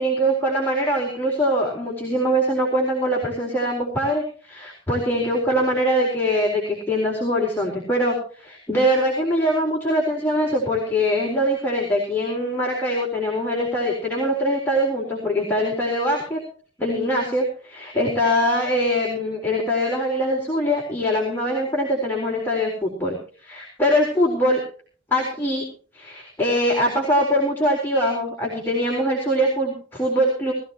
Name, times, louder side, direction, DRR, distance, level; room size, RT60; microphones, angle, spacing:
voice 1, 0.0-16.4 16.8-23.2 23.4-24.6 25.1-25.6 25.9-30.5, equal, 10° left, -3 dB, 4.1 m, -22 dB
20.5 x 15.0 x 3.0 m, 0.41 s
head